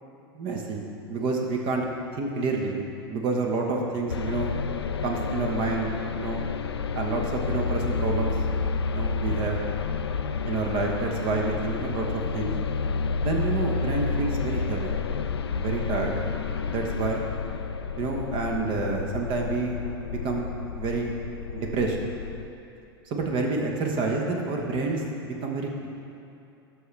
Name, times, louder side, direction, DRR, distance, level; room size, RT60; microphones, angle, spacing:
voice 1, 0.3-0.8 1.1-1.8 2.1-2.8 3.1-4.5 5.0-6.4 6.9-8.3 8.9-9.6 10.5-12.5 13.2-14.9 15.5-16.1 16.7-17.2 18.0-19.7 20.0-21.1 21.5-22.0 23.1-25.9, right 3 dB, 40° right, 1 dB, 1.1 m, -28 dB
sound 1, 4.1-22.5, left 5 dB, 80° left, 0.4 m, -30 dB
12.5 x 6.0 x 3.3 m, 2.7 s
figure-of-eight pair, 90°, 13 cm